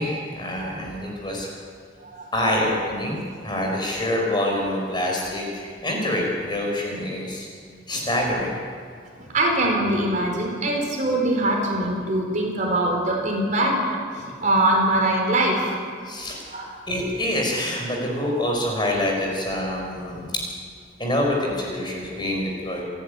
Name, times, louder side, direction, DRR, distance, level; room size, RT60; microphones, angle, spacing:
voice 1, 0.0-1.5 2.3-7.5 7.9-8.6 16.0-16.4 16.9-20.4 21.0-22.8, left 1 dB, 25° left, -1 dB, 5.3 m, -26 dB
voice 2, 9.3-13.8 14.2-15.8 16.5-16.8, right 1 dB, 40° right, 0 dB, 4.5 m, -22 dB
29.5 x 11.0 x 9.7 m, 2.1 s
head